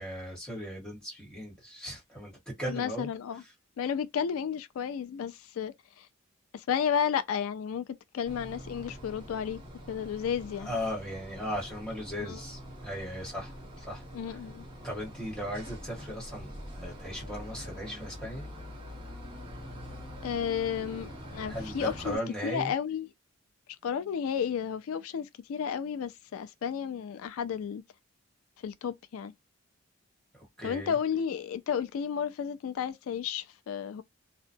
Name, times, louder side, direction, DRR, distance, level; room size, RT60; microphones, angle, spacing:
voice 1, 0.0-3.1 10.6-14.0 14.3-14.4 14.8-18.5 21.5-22.7 30.3-30.9, equal, 5° left, 1.3 m, -37 dB
voice 2, 2.7-3.4 3.8-6.1 6.5-9.6 9.9-10.7 12.2-12.4 14.1-14.7 20.2-22.2 22.4-23.1 23.8-27.8 28.6-29.3 30.6-34.0, left 7 dB, 90° left, 0.3 m, -32 dB
sound 1, 8.2-22.2, equal, 25° right, 1.0 m, -44 dB
2.8 x 2.1 x 2.6 m
head